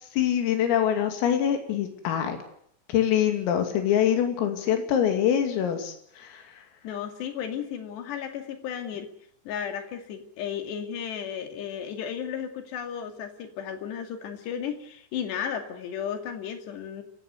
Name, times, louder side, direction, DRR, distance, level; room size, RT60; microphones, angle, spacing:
voice 1, 0.1-2.4 2.9-6.4, left 9 dB, 85° left, 6 dB, 5.3 m, -24 dB
voice 2, 6.8-9.1 9.5-17.0, left 8 dB, 60° left, 6 dB, 4.2 m, -34 dB
28.0 x 16.0 x 8.1 m, 0.70 s
omnidirectional pair, 5.8 m